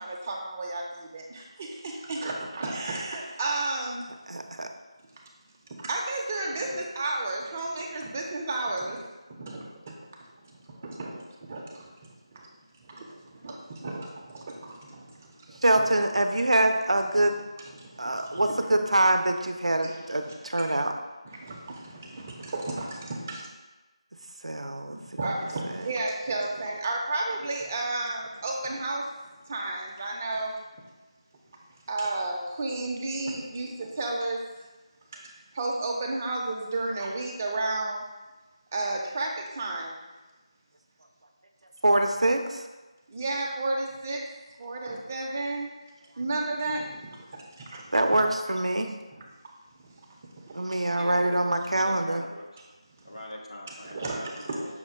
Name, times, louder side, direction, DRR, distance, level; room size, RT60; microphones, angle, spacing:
voice 1, 0.0-4.0 5.8-9.0 9.3-9.9 10.4-10.5 10.8-11.9 12.3-12.5 12.8-15.9 17.8-18.4 19.8-20.7 21.3-23.5 24.6-29.0 29.5-30.6 31.9-34.4 35.1-35.2 35.5-38.1 38.7-40.0 43.1-44.2 44.6-45.7 46.2-48.2 49.8-49.9 50.4-50.6 53.9-54.7, right 2 dB, 25° right, -1 dB, 0.5 m, -33 dB
voice 2, 4.3-4.7 15.6-17.4 18.0-20.9 24.4-25.2 25.7-25.9 41.8-42.7 47.9-48.9 50.5-52.2, right 1 dB, 80° right, 5 dB, 0.5 m, -25 dB
voice 3, 50.9-51.4 51.8-52.5 53.0-54.8, left 1 dB, 65° left, -1 dB, 1.0 m, -42 dB
5.7 x 2.2 x 4.3 m, 1.2 s
figure-of-eight pair, 165°, 3 cm